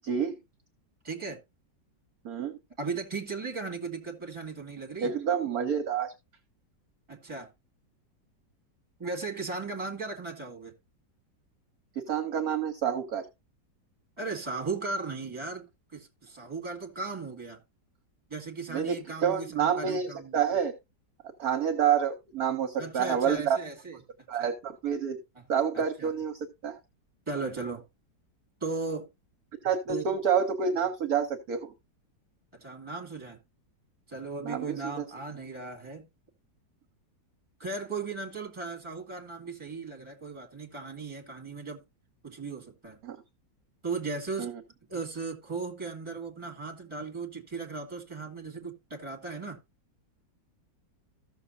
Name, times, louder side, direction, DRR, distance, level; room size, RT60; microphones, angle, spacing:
voice 1, 0.0-0.4 2.2-2.5 5.0-6.1 12.0-13.3 18.7-20.7 21.4-23.6 24.3-25.2 25.5-26.8 29.6-31.7 34.4-35.0 43.0-43.2 44.4-44.5, right 7 dB, 60° right, 1.2 m, -28 dB
voice 2, 1.0-1.4 2.8-5.1 7.1-7.5 9.0-10.7 14.2-15.6 15.9-17.6 18.3-20.4 22.8-24.0 24.3-24.5 25.4-25.5 25.7-26.1 27.3-27.8 28.6-29.1 29.9-30.2 32.5-33.4 34.1-36.0 37.6-41.8 42.2-43.0 43.8-44.5 44.9-49.6, right 4 dB, 15° right, 2.0 m, -37 dB
14.5 x 6.6 x 2.6 m
omnidirectional pair, 1.9 m